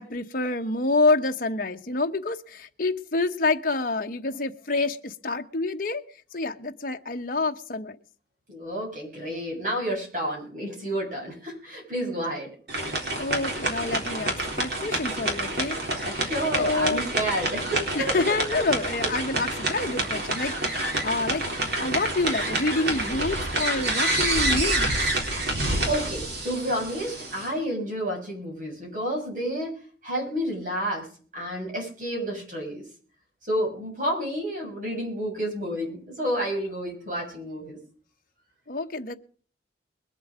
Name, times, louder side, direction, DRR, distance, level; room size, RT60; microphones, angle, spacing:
voice 1, 0.0-6.0 6.3-8.0 13.2-16.0 16.5-17.0 17.9-24.9 38.7-39.2, left 3 dB, 50° left, 4 dB, 1.0 m, -27 dB
voice 2, 8.5-12.5 15.9-18.2 19.0-19.1 25.9-31.1 31.3-32.8 33.4-37.8, equal, 45° right, -1 dB, 7.2 m, -30 dB
sound 1, 12.7-27.5, right 1 dB, 65° right, 3.8 m, -28 dB
22.0 x 7.9 x 5.0 m, 0.43 s
head